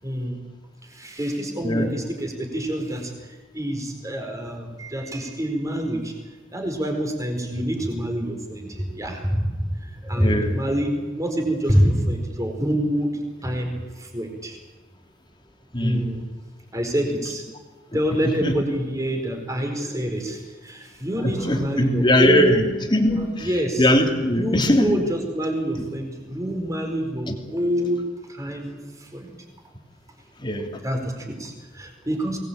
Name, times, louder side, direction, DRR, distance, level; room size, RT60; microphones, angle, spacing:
voice 1, 0.0-0.4 0.8-6.1 6.5-14.6 15.8-16.2 16.7-17.4 17.9-22.6 23.1-23.9 24.3-29.3 30.8-32.4, equal, 15° right, 3 dB, 4.6 m, -26 dB
voice 2, 1.6-1.9 10.2-10.5 15.7-16.1 17.9-18.6 21.2-23.5 23.8-25.0 27.3-27.4 30.4-30.8, left 1 dB, 25° left, 4 dB, 2.9 m, -21 dB
23.5 x 19.5 x 8.8 m, 1.3 s
head